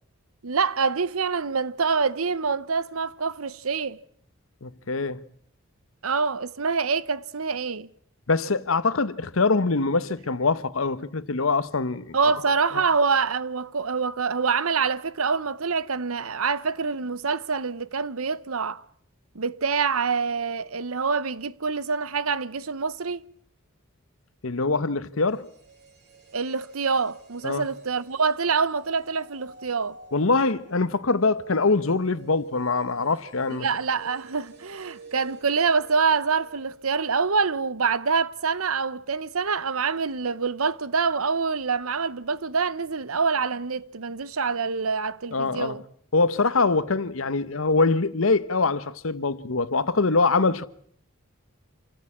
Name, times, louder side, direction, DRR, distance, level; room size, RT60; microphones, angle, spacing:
voice 1, 0.4-4.0 6.0-7.9 12.1-18.8 19.3-23.3 26.3-30.0 33.6-45.8, right 5 dB, 90° right, 1.0 m, -26 dB
voice 2, 4.6-5.2 8.3-12.2 12.7-12.9 24.4-25.5 27.4-27.7 30.1-33.7 45.3-45.8 46.1-50.7, left 3 dB, 75° left, 1.0 m, -24 dB
sound 1, 25.1-37.2 37.5-37.6, right 3 dB, 50° right, 3.9 m, -51 dB
27.0 x 17.0 x 8.6 m
head